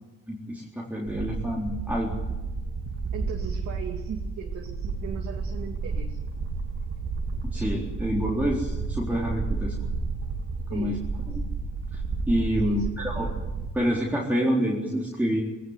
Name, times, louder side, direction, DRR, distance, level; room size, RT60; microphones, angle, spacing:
voice 1, 0.3-2.2 7.5-9.8 10.7-11.0 11.2-11.4 11.9-12.0 12.3-13.3 13.7-15.4, equal, 5° right, -4 dB, 3.9 m, -27 dB
sound 1, 1.1-13.7, right 4 dB, 45° right, 2.9 m, -31 dB
voice 2, 3.1-6.2 10.7-11.0 12.6-13.3, right 7 dB, 65° right, 0 dB, 2.5 m, -38 dB
19.5 x 18.0 x 9.7 m, 1.1 s
cardioid pair, 90°, 30 cm